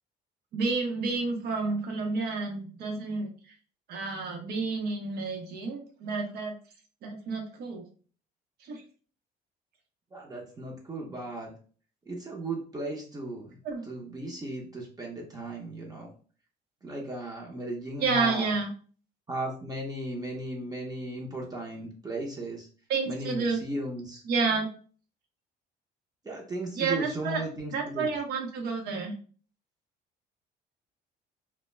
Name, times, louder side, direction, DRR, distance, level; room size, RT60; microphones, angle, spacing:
voice 1, 0.5-3.3 3.9-6.5 7.0-7.9 8.6-8.8 13.6-13.8 18.0-18.7 22.9-23.6 24.2-24.7 26.8-27.4 27.7-29.1, right 4 dB, 70° right, 3 dB, 0.7 m, -30 dB
voice 2, 10.1-11.5 12.1-13.6 13.8-16.1 16.8-18.5 19.3-22.7 23.1-24.2 26.2-28.1, right 2 dB, 20° right, -1 dB, 0.6 m, -36 dB
2.2 x 2.1 x 3.1 m, 0.41 s
cardioid pair, 110°, 17 cm